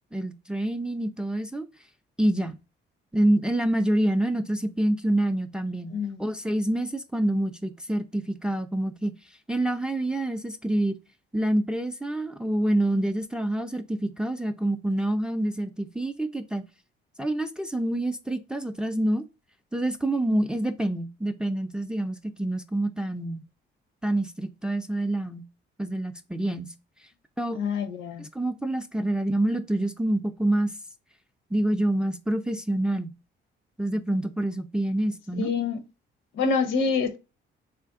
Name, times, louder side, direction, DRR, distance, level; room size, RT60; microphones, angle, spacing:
voice 1, 0.1-1.7 2.2-2.6 3.1-9.1 9.5-11.0 11.3-16.6 17.2-19.2 19.7-23.4 24.0-25.4 25.8-26.7 27.4-27.6 28.2-30.7 31.5-33.1 33.8-35.5, right 1 dB, 5° right, 0.3 m, -27 dB
voice 2, 5.9-6.2 27.5-28.3 35.4-35.8 36.3-37.2, left 5 dB, 75° left, 0.7 m, -26 dB
3.2 x 2.5 x 3.5 m
cardioid pair, 90°, 20 cm